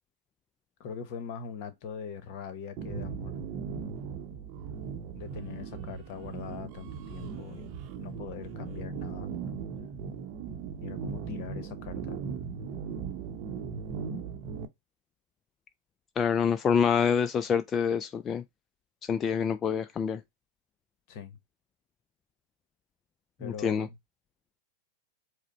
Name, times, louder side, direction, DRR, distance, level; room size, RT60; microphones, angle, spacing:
voice 1, 0.8-3.3 5.1-9.3 10.8-12.2 21.1-21.4 23.4-24.0, left 7 dB, 55° left, 1.0 m, -42 dB
sound 1, 2.8-14.7, right 6 dB, 50° right, 0.7 m, -38 dB
voice 2, 16.2-18.4 19.0-20.2 23.4-23.9, left 7 dB, 25° left, 0.3 m, -26 dB
4.9 x 2.1 x 4.2 m
hypercardioid pair, 100°, 0 cm